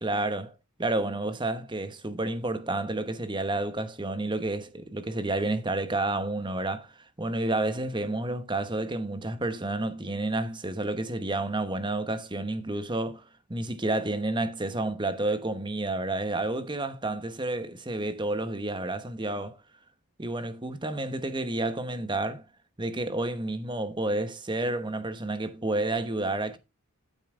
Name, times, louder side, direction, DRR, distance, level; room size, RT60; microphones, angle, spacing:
voice 1, 0.0-13.2 13.5-19.6 20.2-22.4 22.8-26.6, right 2 dB, 20° right, 1.1 m, -30 dB
12.5 x 5.6 x 3.6 m
head